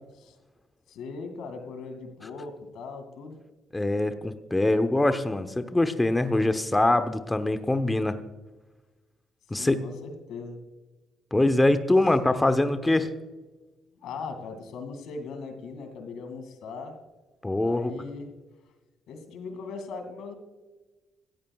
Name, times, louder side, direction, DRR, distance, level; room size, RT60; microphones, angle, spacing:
voice 1, 0.9-3.4 9.6-10.6 13.9-17.0 17.6-18.3 19.1-20.4, left 4 dB, 85° left, 6 dB, 2.2 m, -39 dB
voice 2, 3.7-8.2 9.5-9.8 11.3-13.1 17.4-17.9, left 2 dB, 15° left, 9 dB, 0.9 m, -23 dB
17.0 x 14.0 x 2.3 m, 1.2 s
cardioid pair, 90°, 0 cm